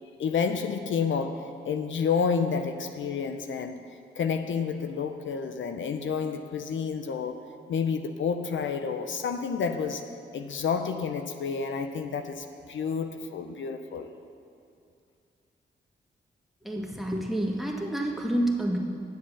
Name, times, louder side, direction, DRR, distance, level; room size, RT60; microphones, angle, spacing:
voice 1, 0.2-3.8 4.2-7.4 7.7-10.1 10.3-14.1, left 6 dB, 70° left, 7 dB, 0.6 m, -30 dB
voice 2, 16.6-18.8, right 1 dB, ahead, -1 dB, 1.9 m, -28 dB
10.5 x 7.5 x 7.2 m, 2.4 s
cardioid pair, 50°, 20 cm